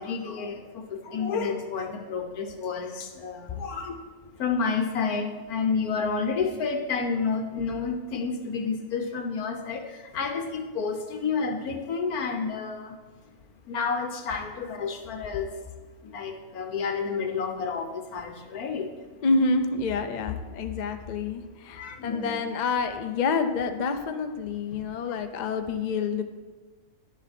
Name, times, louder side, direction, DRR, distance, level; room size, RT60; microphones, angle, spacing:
voice 1, 0.0-4.0 4.4-13.0 13.7-15.5 16.0-18.9 21.8-22.4 24.7-24.8, left 5 dB, 75° left, 5 dB, 1.5 m, -30 dB
voice 2, 19.2-26.2, left 4 dB, 55° left, 7 dB, 0.4 m, -28 dB
11.0 x 7.3 x 4.3 m, 1.4 s
omnidirectional pair, 1.6 m